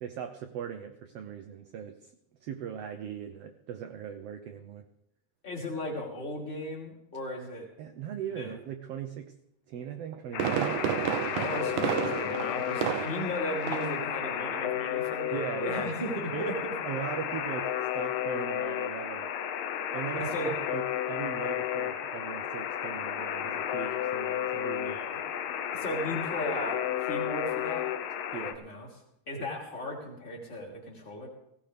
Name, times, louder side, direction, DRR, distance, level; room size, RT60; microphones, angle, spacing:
voice 1, 0.0-2.1 2.4-4.8 7.8-9.3 9.7-10.8 15.3-15.9 16.3-16.5 16.9-19.3 19.9-20.8 21.1-25.0 28.3-28.6 29.4-29.5, right 8 dB, 70° right, 6 dB, 1.5 m, -39 dB
voice 2, 5.4-7.7 8.3-8.5 11.3-16.6 20.1-20.5 23.8-24.0 24.8-25.2 25.7-27.9 28.3-28.9 29.3-31.3, left 1 dB, 15° left, -2 dB, 3.0 m, -36 dB
Fireworks, 9.9-13.4 13.7-14.0 14.4-14.5, right 9 dB, 90° right, 2.3 m, -31 dB
Alarm, 10.3-28.5, left 10 dB, 85° left, 1.1 m, -33 dB
17.5 x 17.0 x 3.4 m, 0.79 s
omnidirectional pair, 3.5 m